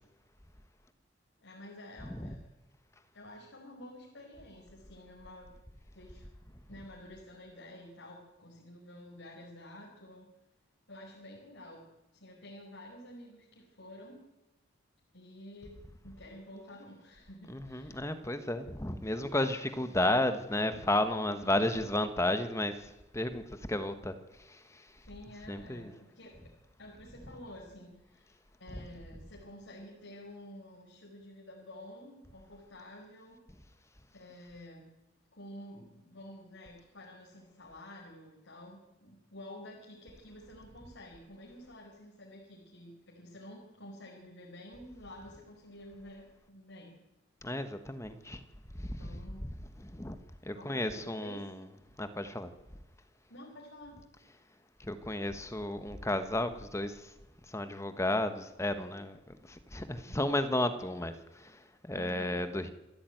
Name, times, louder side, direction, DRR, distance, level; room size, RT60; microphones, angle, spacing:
voice 1, 1.4-2.4 3.1-5.5 5.9-6.3 6.7-10.3 10.9-11.8 12.1-14.2 15.1-18.1 21.3-21.9 25.0-26.5 26.8-33.4 34.1-34.9 35.3-47.0 49.0-49.5 50.5-51.5 53.3-54.0 61.9-62.4, left 1 dB, 80° left, 4.9 m, -50 dB
voice 2, 2.0-2.3 17.5-25.0 25.5-25.9 28.7-28.8 47.4-48.4 48.7-49.1 49.8-50.2 50.4-51.6 52.0-52.5 54.8-57.1 57.5-62.7, left 1 dB, 15° left, 1.3 m, -33 dB
27.0 x 13.5 x 9.3 m
head